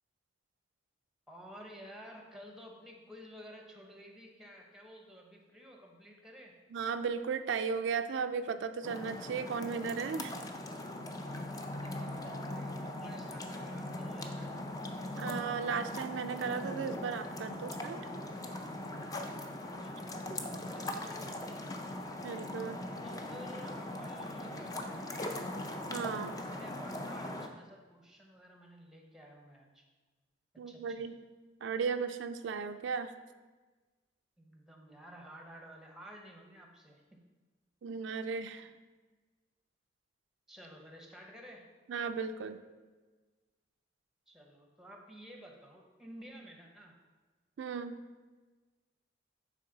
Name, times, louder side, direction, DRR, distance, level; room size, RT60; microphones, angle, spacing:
voice 1, 1.3-6.5 11.5-14.7 19.8-21.3 23.0-25.5 26.3-29.8 30.7-31.1 34.4-37.2 40.5-41.6 44.3-46.9, equal, 5° right, 1 dB, 0.8 m, -53 dB
voice 2, 6.7-10.3 15.2-18.0 22.2-22.8 25.9-26.3 30.6-31.1 31.6-33.1 37.8-38.7 41.9-42.6 47.6-48.0, right 5 dB, 75° right, 9 dB, 0.3 m, -35 dB
sound 1, 8.8-27.5, left 1 dB, 20° left, 0.4 m, -40 dB
9.2 x 3.7 x 3.9 m, 1.3 s
head